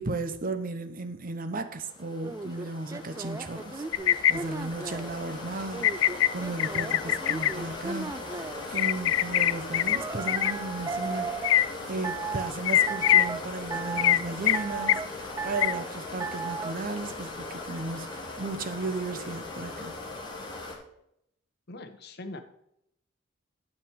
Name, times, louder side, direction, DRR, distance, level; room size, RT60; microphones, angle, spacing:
voice 1, 0.0-8.1 8.7-19.9, right 2 dB, 45° right, 0.8 m, -35 dB
sound 1, 1.8-20.8, left 3 dB, 25° left, 1.8 m, -39 dB
sound 2, 2.2-5.2 5.7-8.7 9.9-11.6 12.0-12.5 12.9-13.4 13.7-14.2 14.5-15.1 15.4-15.8 16.2-16.7, right 4 dB, 15° right, 0.3 m, -36 dB
sound 3, 3.9-4.3 5.8-6.3 6.6-7.5 8.8-10.0 10.3-10.5 11.4-11.7 12.7-13.3 14.0-14.2 14.5-14.6 14.9-15.0 15.6-15.7, left 12 dB, 80° left, 0.3 m, -22 dB
voice 2, 21.7-22.4, left 2 dB, 55° left, 1.0 m, -41 dB
9.2 x 6.0 x 4.7 m
head